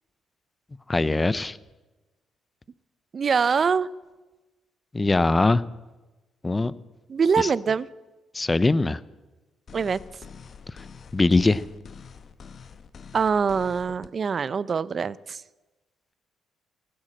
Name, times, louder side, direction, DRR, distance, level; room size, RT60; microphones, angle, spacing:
voice 1, 0.9-1.6 4.9-5.6 6.4-6.7 7.4-7.5 8.3-9.0 10.7-10.8 11.1-11.6, left 2 dB, 20° left, 18 dB, 0.6 m, -21 dB
voice 2, 3.1-3.9 7.1-7.9 9.7-10.0 13.1-15.4, right 6 dB, 45° right, 19 dB, 0.5 m, -24 dB
sound 1, 9.7-14.1, left 6 dB, 50° left, 0.9 m, -46 dB
16.0 x 12.0 x 7.6 m, 1.2 s
cardioid pair, 90°, 0 cm